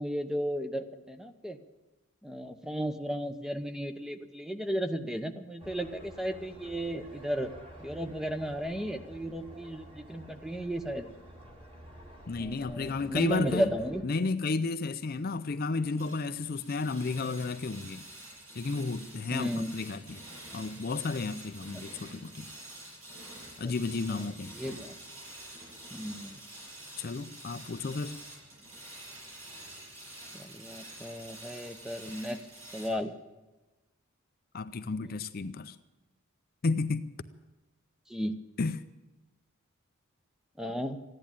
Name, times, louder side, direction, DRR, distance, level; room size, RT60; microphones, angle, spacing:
voice 1, 0.0-1.6 2.2-7.5 7.8-11.1 12.4-14.0 19.3-19.7 21.7-21.8 23.6-23.7 24.1-24.2 24.5-24.9 25.9-26.4 30.3-32.4 32.7-33.1 35.0-35.6 38.1-38.4 40.6-41.0, equal, ahead, 0.7 m, -34 dB
sound 1, 5.6-14.0, right 1 dB, 25° right, 2.3 m, -50 dB
voice 2, 12.3-13.7 14.0-18.1 18.5-20.3 20.5-22.5 23.6-24.6 27.0-28.2 34.5-35.8 36.6-37.1 38.6-38.8, left 3 dB, 45° left, 0.5 m, -32 dB
sound 2, 16.0-32.9, right 1 dB, 80° right, 7.7 m, -48 dB
15.0 x 10.5 x 8.8 m
head